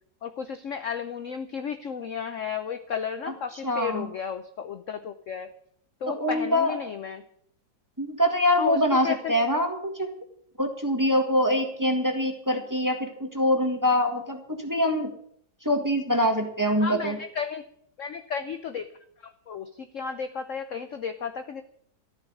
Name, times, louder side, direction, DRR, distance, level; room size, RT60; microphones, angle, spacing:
voice 1, 0.2-5.5 6.0-7.2 8.6-8.8 9.0-9.4 16.8-17.6 18.0-18.9 19.2-21.6, left 6 dB, 55° left, 9 dB, 0.9 m, -33 dB
voice 2, 3.6-4.1 6.0-6.7 8.0-10.1 10.6-15.1 15.6-17.2, left 1 dB, 10° right, 4 dB, 1.6 m, -24 dB
13.5 x 7.3 x 9.5 m, 0.65 s
omnidirectional pair, 2.0 m